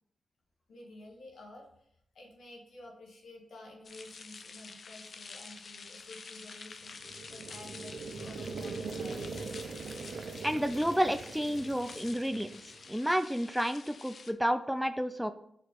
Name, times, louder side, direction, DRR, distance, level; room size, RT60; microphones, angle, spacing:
voice 1, 0.7-1.9 2.1-9.4, left 1 dB, 80° left, -1 dB, 1.7 m, -51 dB
sound 1, 3.8-14.3, left 4 dB, 60° left, 0.6 m, -48 dB
sound 2, 6.9-12.9, right 4 dB, 70° right, 0.5 m, -42 dB
voice 2, 10.4-12.5 12.9-15.3, equal, 5° right, 9 dB, 0.4 m, -30 dB
5.1 x 4.1 x 5.3 m, 0.70 s
cardioid pair, 55°, 0 cm